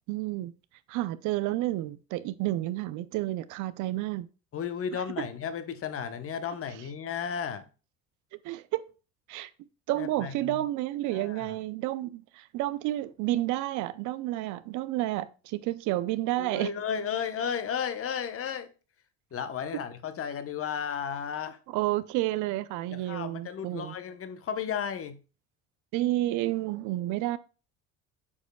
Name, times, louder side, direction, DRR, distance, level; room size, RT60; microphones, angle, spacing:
voice 1, 0.1-0.5 0.9-4.3 4.9-5.0 8.4-8.8 9.3-9.5 9.9-16.7 21.7-23.9 25.9-27.4, right 16 dB, 60° right, 0.5 m, -30 dB
voice 2, 4.5-7.6 10.0-10.6 11.1-11.5 16.4-18.7 19.3-21.6 22.9-25.2, left 7 dB, 40° left, 0.9 m, -34 dB
8.3 x 5.0 x 2.2 m
hypercardioid pair, 75°, 34 cm